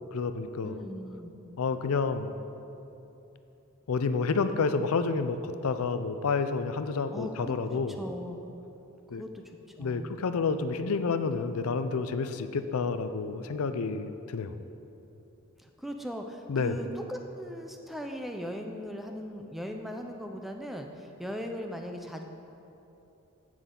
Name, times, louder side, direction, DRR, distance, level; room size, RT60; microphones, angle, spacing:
voice 1, 0.1-0.8 1.6-2.3 3.9-8.0 9.1-9.2 9.8-14.6 16.5-16.8, left 4 dB, 75° left, 10 dB, 0.5 m, -29 dB
voice 2, 0.6-1.3 7.1-7.5 8.0-8.4 9.2-9.4 9.8-10.7 15.6-22.2, equal, ahead, 3 dB, 0.5 m, -39 dB
15.0 x 6.2 x 3.8 m, 3.0 s
head